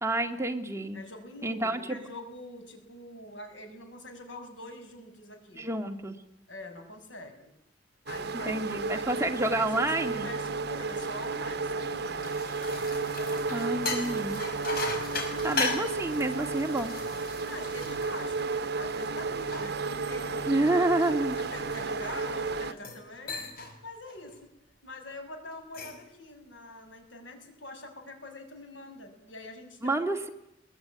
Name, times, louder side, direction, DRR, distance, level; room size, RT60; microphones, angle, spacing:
voice 1, 0.0-1.0 1.4-2.0 5.6-6.2 8.5-10.3 13.5-14.4 15.3-16.9 20.5-21.4 29.8-30.3, right 2 dB, 15° right, 5 dB, 1.9 m, -29 dB
voice 2, 0.9-5.7 6.5-7.5 8.1-12.3 17.4-20.8 21.5-23.4 23.8-24.5 24.8-30.0, left 1 dB, 80° left, 5 dB, 6.4 m, -45 dB
sound 1, 8.1-22.7, right 4 dB, 60° right, 1.1 m, -33 dB
sound 2, 11.9-18.7 19.2-22.2 22.7-23.0 23.3-23.7 24.1-24.4 25.5-26.1, left 3 dB, 55° left, 5.9 m, -37 dB
22.5 x 22.0 x 9.5 m, 0.78 s
head